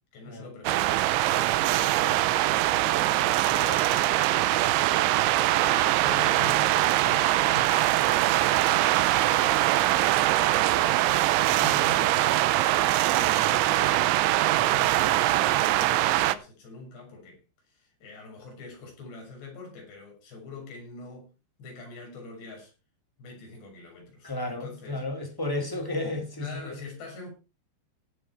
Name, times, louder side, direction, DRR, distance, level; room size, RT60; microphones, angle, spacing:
voice 1, 0.1-4.1 4.4-9.6 9.9-12.5 13.2-14.1 14.5-17.4 17.7-21.3 21.6-22.7 23.2-25.0 25.7-25.8 26.4-27.3, left 3 dB, 65° left, 8.7 m, -44 dB
sound 1, 0.7-16.4, right 15 dB, 85° right, 3.1 m, -23 dB
voice 2, 3.5-3.8 13.1-13.4 24.2-26.8, left 2 dB, 5° left, 2.1 m, -33 dB
17.0 x 8.2 x 4.8 m
omnidirectional pair, 5.2 m